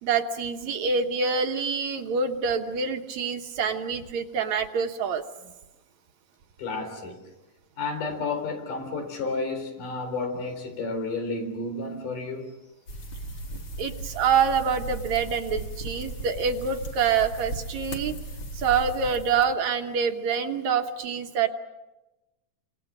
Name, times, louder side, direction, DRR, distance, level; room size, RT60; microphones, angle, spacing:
voice 1, 0.0-5.2 13.8-18.2 18.5-21.5, right 6 dB, 65° right, 2.3 m, -26 dB
voice 2, 6.6-7.2 7.8-12.6, left 3 dB, 75° left, 5.5 m, -31 dB
sound 1, 12.9-19.5, right 1 dB, 35° left, 2.3 m, -37 dB
30.0 x 26.0 x 6.3 m
omnidirectional pair, 3.7 m